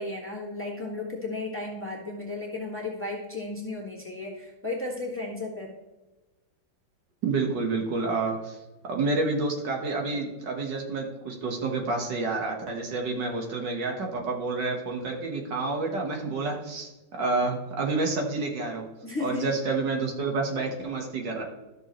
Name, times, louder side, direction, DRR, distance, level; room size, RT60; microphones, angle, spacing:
voice 1, 0.0-5.8 10.1-10.4 19.0-19.5, left 2 dB, 5° left, -3 dB, 1.5 m, -34 dB
voice 2, 7.2-8.6 8.9-18.9 19.2-21.4, right 3 dB, 65° right, 1 dB, 1.9 m, -29 dB
13.0 x 6.7 x 3.0 m, 1.1 s
omnidirectional pair, 2.1 m